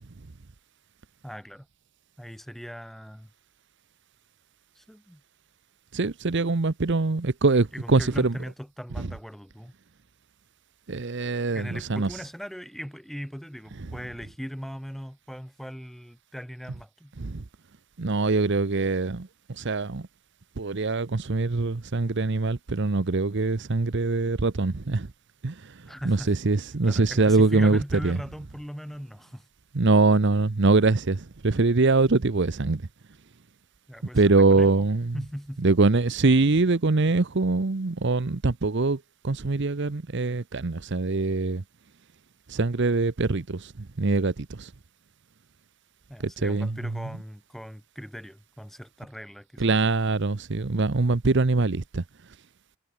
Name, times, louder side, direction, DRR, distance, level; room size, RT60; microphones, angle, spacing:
voice 1, 1.2-1.7 2.2-3.3 4.8-5.2 7.7-9.7 11.5-17.1 25.9-26.3 26.8-29.5 33.9-34.9 35.1-35.6 46.1-49.7, equal, ahead, 7.5 m, -39 dB
voice 2, 5.9-8.3 9.0-9.1 10.9-12.1 17.2-17.4 18.0-20.1 20.6-25.1 25.4-28.2 29.7-32.8 34.1-35.1 35.6-41.6 42.5-44.7 46.2-46.8 49.6-52.0, right 3 dB, 55° right, 0.8 m, -23 dB
head